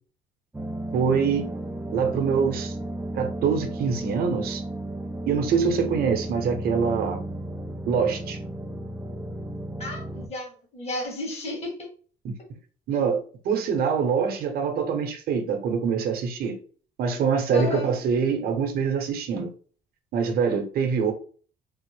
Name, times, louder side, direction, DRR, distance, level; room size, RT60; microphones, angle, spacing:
sound 1, 0.5-10.3, right 1 dB, 10° right, 0.4 m, -34 dB
voice 1, 0.9-1.4 1.9-2.7 3.1-4.6 5.3-7.2 7.9-8.4 12.2-12.3 12.9-16.6 17.0-19.5 20.1-21.1, right 6 dB, 65° right, 0.8 m, -24 dB
voice 2, 9.8-11.7 17.5-17.9, left 2 dB, 40° left, 1.5 m, -32 dB
3.7 x 2.0 x 3.1 m
cardioid pair, 110°, 17 cm